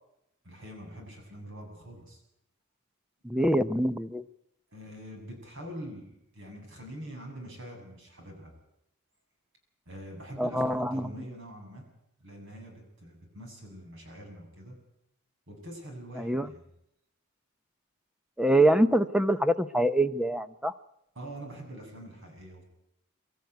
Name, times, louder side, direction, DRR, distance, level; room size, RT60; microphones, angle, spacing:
voice 1, 0.4-2.2 4.7-8.5 9.9-11.9 12.2-14.8 15.5-16.7 21.2-22.6, right 1 dB, 60° right, 2 dB, 7.5 m, -44 dB
voice 2, 3.2-4.2 10.4-11.1 16.2-16.5 18.4-20.7, right 1 dB, 5° right, 12 dB, 0.7 m, -25 dB
24.5 x 14.0 x 9.4 m, 0.81 s
head